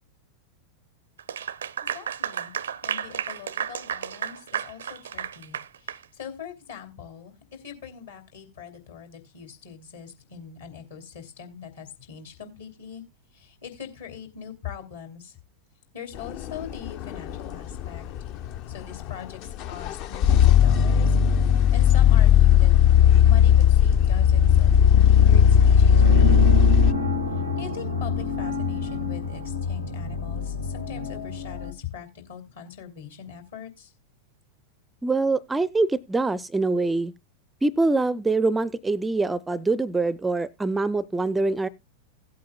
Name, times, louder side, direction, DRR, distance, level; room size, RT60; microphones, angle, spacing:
Clapping / Applause, 1.2-6.0, right 8 dB, 65° right, 0.5 m, -32 dB
voice 1, 1.8-2.5 2.8-13.0 13.3-15.4 15.9-18.1 18.7-22.7 23.2-26.7 27.6-33.9, left 8 dB, 65° left, 2.7 m, -41 dB
sound 1, 16.2-26.9, left 9 dB, 40° left, 0.5 m, -17 dB
sound 2, 25.2-31.7, left 3 dB, 85° left, 1.4 m, -28 dB
voice 2, 35.0-37.1 37.6-41.7, right 3 dB, 10° right, 0.4 m, -24 dB
17.0 x 8.5 x 2.2 m
figure-of-eight pair, 90°, 0 cm